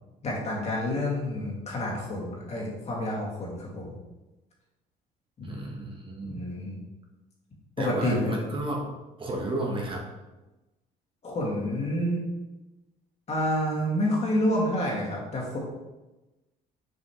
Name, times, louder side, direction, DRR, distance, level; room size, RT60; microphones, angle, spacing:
voice 1, 0.2-3.9 5.4-5.5 6.2-6.8 7.8-8.3 11.2-12.2 13.3-15.6, left 1 dB, 40° left, -3 dB, 2.1 m, -28 dB
voice 2, 5.4-6.5 7.8-10.1, right 1 dB, 30° right, 0 dB, 1.1 m, -32 dB
6.8 x 4.8 x 3.1 m, 1.1 s
cardioid pair, 110°, 17 cm